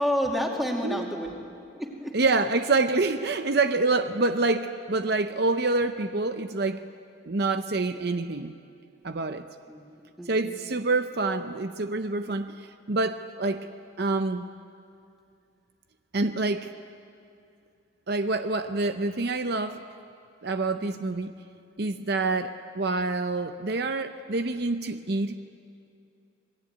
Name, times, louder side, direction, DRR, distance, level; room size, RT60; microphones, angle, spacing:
voice 1, 0.0-1.3 1.7-2.2 9.7-10.6 20.8-21.1, equal, ahead, 0 dB, 2.5 m, -30 dB
voice 2, 2.1-6.8 7.3-8.5 9.0-9.5 10.3-13.7 14.0-14.4 16.1-16.7 18.1-19.8 20.4-21.3 21.8-25.4, right 3 dB, 50° right, 9 dB, 0.7 m, -27 dB
26.5 x 20.5 x 9.2 m, 2.5 s
head